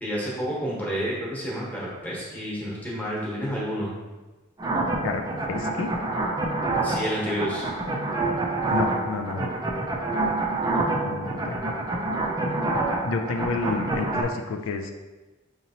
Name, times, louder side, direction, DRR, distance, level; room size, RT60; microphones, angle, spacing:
voice 1, 0.0-3.9 6.8-7.6, equal, 10° left, -6 dB, 1.1 m, -30 dB
sound 1, 4.6-14.2, right 2 dB, 20° right, 0.4 m, -27 dB
voice 2, 5.0-5.9 8.7-9.5 11.0-11.7 13.0-14.9, left 4 dB, 90° left, 5 dB, 0.4 m, -29 dB
5.1 x 2.9 x 2.7 m, 1.2 s
head